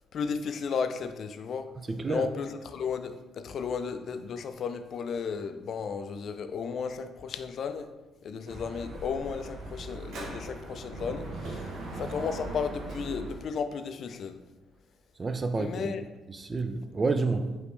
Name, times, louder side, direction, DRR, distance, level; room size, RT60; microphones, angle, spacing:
voice 1, 0.1-1.7 2.1-7.9 8.2-11.7 12.0-14.4 15.6-16.0, left 6 dB, 60° left, 0.3 m, -34 dB
voice 2, 1.9-2.3 11.6-11.8 15.2-16.0 16.3-17.6, right 3 dB, 30° right, 0.4 m, -29 dB
Dog / Motorcycle, 8.5-13.4, right 2 dB, 70° right, 0.9 m, -39 dB
5.1 x 3.1 x 3.1 m
cardioid pair, 90°, 0 cm